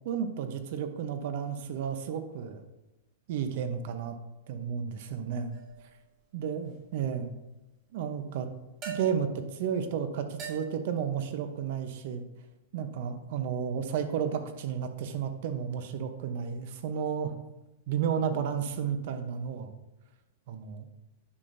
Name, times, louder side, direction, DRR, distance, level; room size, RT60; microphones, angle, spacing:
voice 1, 0.0-2.6 3.3-4.2 4.5-5.5 6.3-7.3 7.9-8.5 8.9-12.2 12.7-17.3 17.9-19.8 20.5-20.9, right 7 dB, 55° right, 9 dB, 0.8 m, -32 dB
sound 1, 5.5-5.9 8.8-9.4 10.4-11.0, right 6 dB, 35° right, 2.1 m, -41 dB
9.7 x 5.9 x 2.7 m, 0.98 s
supercardioid pair, 160°, 0 cm